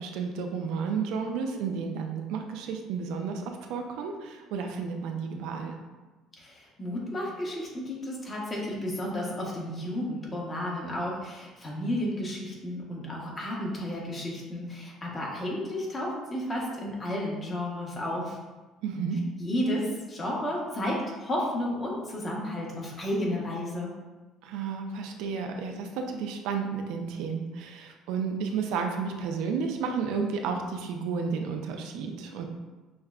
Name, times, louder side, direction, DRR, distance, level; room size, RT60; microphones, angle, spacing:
voice 1, 0.0-5.7 18.8-19.2 24.4-32.5, right 5 dB, 80° right, 4 dB, 0.4 m, -32 dB
voice 2, 6.4-18.4 19.4-23.9, left 1 dB, 25° left, -3 dB, 1.1 m, -32 dB
6.1 x 2.2 x 2.4 m, 1.2 s
cardioid pair, 115°, 0 cm